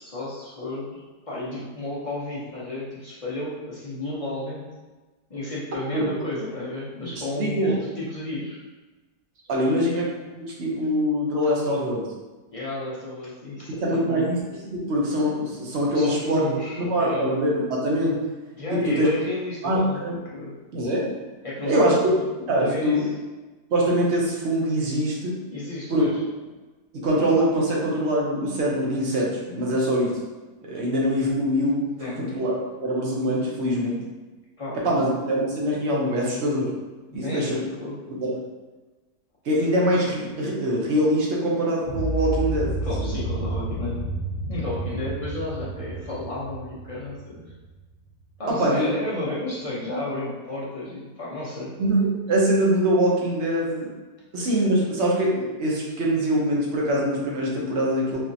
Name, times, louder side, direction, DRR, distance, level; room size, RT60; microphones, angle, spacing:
voice 1, 0.0-4.7 5.3-8.6 9.5-9.9 12.5-14.3 15.9-17.3 18.6-20.0 20.3-20.5 21.4-22.2 22.6-23.0 25.5-26.2 32.0-32.2 34.6-35.1 37.1-38.0 42.8-44.0 44.5-47.5 48.4-51.7, left 2 dB, 45° left, -8 dB, 0.4 m, -32 dB
voice 2, 7.0-7.7 9.5-10.0 10.4-12.1 13.7-14.4 14.7-16.4 16.8-18.2 18.7-19.1 19.6-20.2 20.7-21.1 21.7-22.0 22.5-23.1 23.7-25.4 25.9-26.1 26.9-30.1 30.6-31.9 32.2-32.5 32.8-34.0 34.8-36.7 37.1-37.6 38.1-38.3 39.4-43.2 48.5-48.9 51.8-53.9 54.3-58.2, equal, 50° right, -4 dB, 1.0 m, -23 dB
sound 1, 41.8-47.9, right 1 dB, 70° left, 1.2 m, -30 dB
4.2 x 3.0 x 2.7 m, 1.2 s
omnidirectional pair, 1.8 m